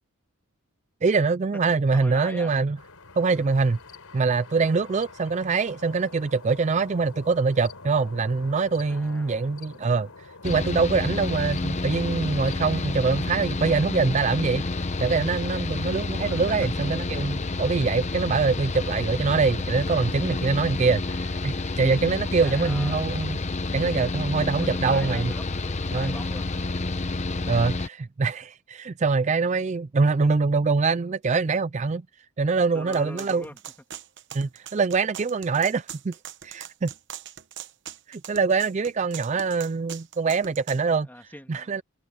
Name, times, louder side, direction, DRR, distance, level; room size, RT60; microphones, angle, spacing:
voice 1, 1.0-2.8 3.2-3.8 4.1-10.1 10.4-14.6 15.0-23.4 23.7-25.3 25.9-26.1 27.5-32.0 32.4-33.4 34.3-36.1 36.4-36.9 38.1-41.1 41.5-41.8, right 4 dB, 35° right, 0.4 m, -24 dB
voice 2, 1.7-2.5 8.9-9.6 16.2-16.7 22.4-23.1 24.4-26.5 32.7-33.6 41.0-41.8, left 1 dB, 10° left, 2.7 m, -42 dB
sound 1, 2.8-13.5, left 4 dB, 85° left, 4.4 m, -47 dB
Mechanical fan, 10.4-27.9, left 2 dB, 30° left, 0.8 m, -29 dB
sound 2, 32.9-40.8, right 10 dB, 55° right, 1.0 m, -41 dB
head